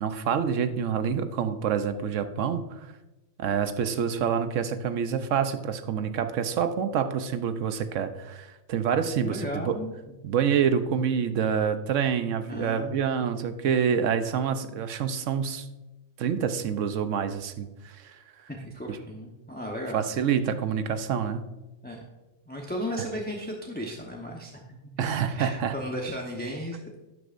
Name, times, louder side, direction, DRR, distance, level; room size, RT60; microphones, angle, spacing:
voice 1, 0.0-2.9 3.4-9.8 10.2-15.7 16.2-18.2 18.9-19.0 19.9-21.4 25.0-25.7, right 7 dB, 90° right, 9 dB, 1.1 m, -27 dB
voice 2, 9.2-9.9 12.5-13.0 18.5-20.0 21.8-22.0 22.5-24.6 25.0-25.1 25.3-27.0, equal, 10° left, -1 dB, 0.9 m, -35 dB
12.0 x 9.7 x 2.5 m, 1.1 s
omnidirectional pair, 1.2 m